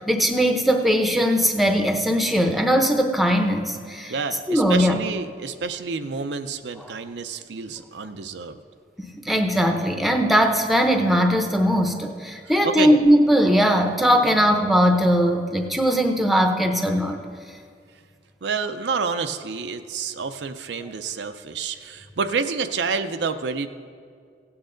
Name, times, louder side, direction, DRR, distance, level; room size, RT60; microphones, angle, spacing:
voice 1, 0.0-4.1 4.5-5.0 6.8-6.9 9.0-17.2 20.8-20.9, equal, ahead, 4 dB, 0.7 m, -20 dB
voice 2, 4.1-8.6 12.6-12.9 14.2-14.4 18.4-23.7, right 5 dB, 80° right, 9 dB, 0.5 m, -28 dB
16.5 x 8.7 x 3.8 m, 2.2 s
head